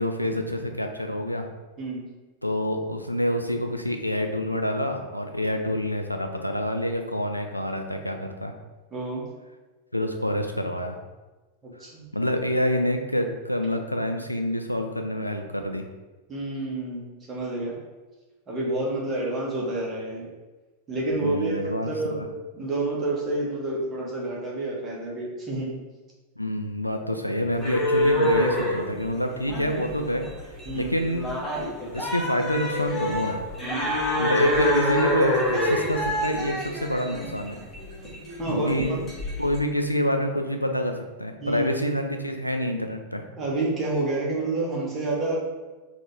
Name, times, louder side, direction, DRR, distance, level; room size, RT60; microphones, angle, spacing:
voice 1, 0.0-1.5 2.4-8.5 9.9-11.0 11.8-11.9 12.1-15.8 21.1-22.3 26.4-30.3 30.7-31.3 31.9-33.4 34.2-37.6 38.5-39.1 39.4-43.2, equal, 90° left, 4 dB, 0.3 m, -27 dB
voice 2, 1.8-2.1 8.9-9.2 11.6-12.0 16.3-17.8 18.5-20.3 20.9-22.2 22.5-25.7 30.6-30.9 33.6-33.9 38.4-38.7 41.4-41.6 43.4-45.4, right 2 dB, 20° right, -3 dB, 1.1 m, -29 dB
sound 1, 27.5-39.6, left 1 dB, 15° left, 1.1 m, -26 dB
3.9 x 2.5 x 3.2 m, 1.2 s
figure-of-eight pair, 90°, 0 cm